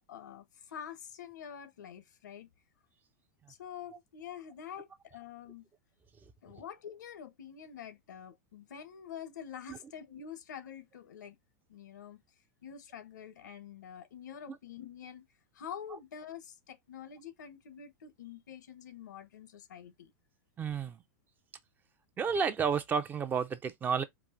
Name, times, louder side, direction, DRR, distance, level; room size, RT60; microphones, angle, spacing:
voice 1, 0.1-2.5 3.5-5.6 6.4-11.4 11.7-12.2 12.6-15.2 15.5-20.1, left 8 dB, 90° left, 1.1 m, -46 dB
voice 2, 20.6-21.0 22.2-24.0, right 6 dB, 20° right, 0.6 m, -31 dB
4.7 x 2.5 x 3.8 m
supercardioid pair, 135°, 9 cm